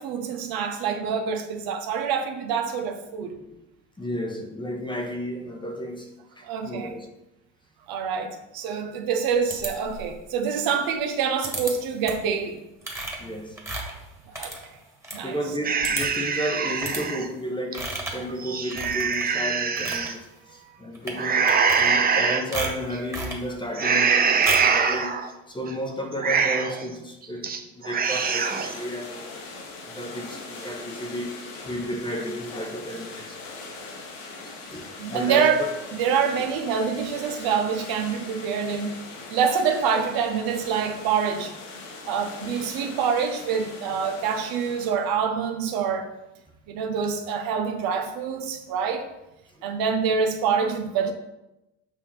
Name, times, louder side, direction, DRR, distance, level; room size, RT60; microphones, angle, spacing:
voice 1, 0.0-3.4 6.4-6.9 7.9-12.6 14.4-14.5 15.1-15.4 20.5-20.8 35.0-35.6 35.9-39.0 39.3-41.5 42.1-46.1 46.7-49.1 49.6-51.1, right 6 dB, 65° right, 1.1 m, -26 dB
voice 2, 4.0-7.1 13.2-13.6 15.2-33.4 34.4-35.7 49.6-49.7, equal, 10° left, 1.0 m, -33 dB
sound 1, 9.5-10.2 11.4-11.7 12.0-12.3 12.8-15.2 15.5-15.6 15.8-16.3 16.8-17.0 17.7-18.3 18.7-19.3 19.6-20.1 20.9-21.2 21.5-22.2 22.5-23.4 24.4-24.8, right 1 dB, 5° right, 1.7 m, -33 dB
sound 2, 15.6-17.3 17.7-17.8 18.3-20.1 21.2-22.4 22.9-23.3 23.8-25.3 25.7-25.8 26.1-26.8 27.2-27.6 27.8-28.8, right 5 dB, 25° right, 0.6 m, -23 dB
sound 3, 28.1-44.9, left 3 dB, 75° left, 1.7 m, -41 dB
7.4 x 2.9 x 5.8 m
supercardioid pair, 95°, 38 cm